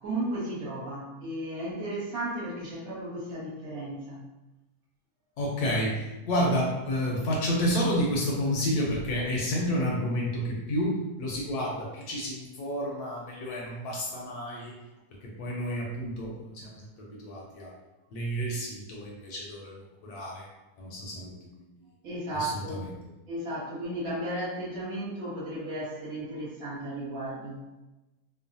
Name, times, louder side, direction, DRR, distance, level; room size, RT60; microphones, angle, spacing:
voice 1, 0.0-4.2 22.0-22.8 23.3-27.6, right 1 dB, 60° right, -8 dB, 1.3 m, -34 dB
voice 2, 5.4-14.7 15.2-17.7 18.1-20.5 20.8-21.3 22.3-22.9, equal, 70° left, -2 dB, 1.0 m, -30 dB
3.0 x 2.0 x 2.6 m, 1.0 s
omnidirectional pair, 1.8 m